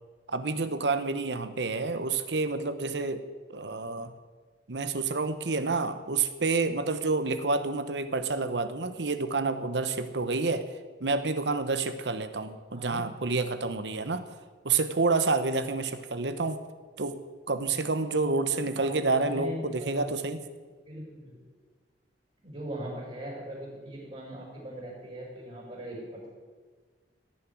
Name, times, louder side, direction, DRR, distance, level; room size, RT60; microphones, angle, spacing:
voice 1, 0.3-3.2 3.5-4.1 4.7-10.7 11.0-14.3 14.6-16.6 17.0-17.2 17.5-20.4, right 3 dB, 75° right, 10 dB, 1.1 m, -29 dB
voice 2, 18.5-20.1 20.9-21.3 22.4-26.3, equal, 40° right, -8 dB, 5.6 m, -40 dB
15.5 x 7.1 x 9.4 m, 1.4 s
head